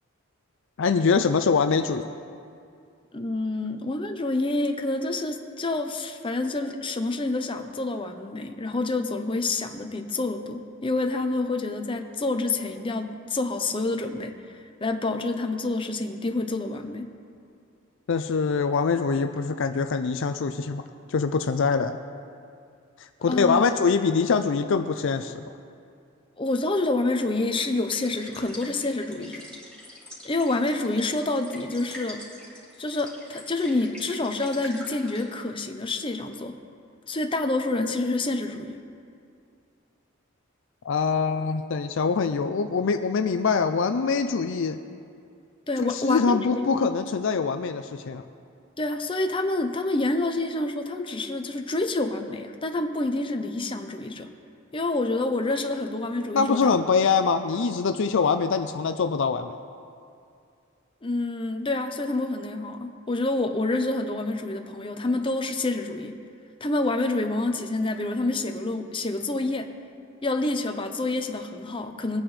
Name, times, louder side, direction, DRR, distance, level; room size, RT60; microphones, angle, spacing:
voice 1, 0.8-2.1 18.1-20.8 21.1-22.0 23.0-25.4 40.8-44.8 45.8-48.2 56.3-59.5, left 5 dB, 60° left, 8 dB, 0.4 m, -24 dB
voice 2, 3.1-14.3 14.8-17.1 23.3-23.6 26.4-29.5 30.2-32.2 32.8-36.5 37.1-38.8 45.7-46.9 48.8-54.3 54.7-56.7 61.0-66.2 66.6-69.7 70.2-72.2, left 2 dB, 25° left, 5 dB, 0.7 m, -28 dB
sound 1, 27.8-35.2, left 1 dB, 5° left, 3.0 m, -45 dB
21.5 x 9.2 x 3.3 m, 2.4 s
head